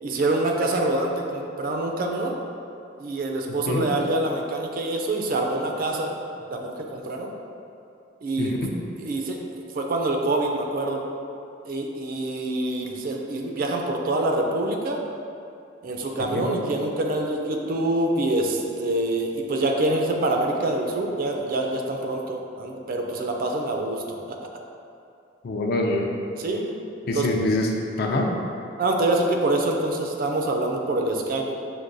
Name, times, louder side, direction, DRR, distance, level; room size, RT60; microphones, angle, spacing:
voice 1, 0.0-2.3 2.9-6.1 6.5-7.3 8.2-8.6 9.0-11.0 11.7-15.0 15.8-24.4 26.4-26.8 27.1-27.3 28.8-31.5, right 2 dB, 50° right, 1 dB, 0.4 m, -26 dB
voice 2, 8.4-8.7 16.2-16.4 25.4-26.1 27.1-27.7 28.0-28.3, left 2 dB, 55° left, 1 dB, 0.4 m, -25 dB
5.9 x 2.2 x 2.5 m, 2.6 s
head